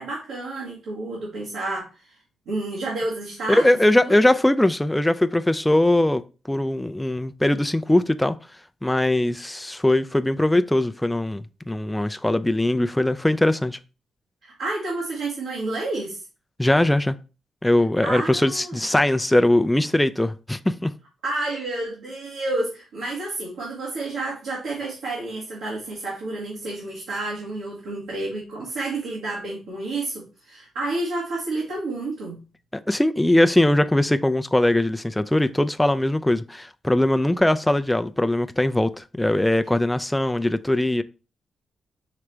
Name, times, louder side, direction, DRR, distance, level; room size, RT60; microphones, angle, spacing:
voice 1, 0.0-2.2 2.4-4.2 14.4-16.2 18.0-18.9 21.2-32.4, right 2 dB, 85° right, 1.6 m, -30 dB
voice 2, 3.5-6.2 6.5-8.4 8.8-13.8 16.6-17.2 17.6-20.9 32.7-41.0, left 1 dB, 10° left, 0.4 m, -21 dB
4.9 x 3.3 x 3.1 m
supercardioid pair, 50°, 0 cm